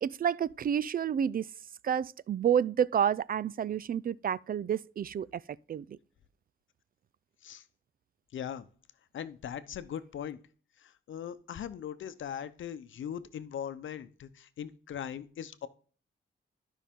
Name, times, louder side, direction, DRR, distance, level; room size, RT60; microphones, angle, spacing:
voice 1, 0.0-1.5 1.8-5.4 5.7-6.0, right 8 dB, 50° right, 0.4 m, -29 dB
voice 2, 8.3-8.7 9.1-10.4 10.8-15.7, left 9 dB, 80° left, 0.8 m, -40 dB
12.5 x 5.5 x 3.6 m
cardioid pair, 100°, 20 cm